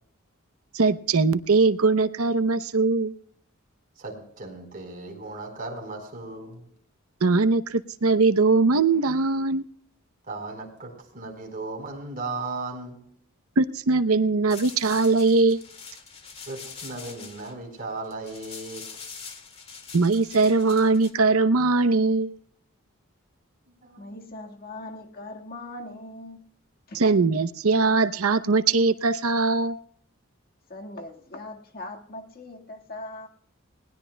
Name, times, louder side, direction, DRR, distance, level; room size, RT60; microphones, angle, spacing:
voice 1, 0.7-3.1 7.2-9.6 13.6-15.6 19.9-22.3 27.0-29.8, right 3 dB, 90° right, 0.8 m, -21 dB
voice 2, 4.0-6.6 10.3-13.0 16.5-18.8 23.7-24.2, right 3 dB, 45° right, 4.3 m, -36 dB
sound 1, 14.5-21.1, left 5 dB, 30° left, 2.0 m, -43 dB
voice 3, 24.0-26.5 26.9-27.0 30.7-33.3, left 2 dB, 45° left, 1.7 m, -40 dB
21.0 x 19.0 x 2.2 m
head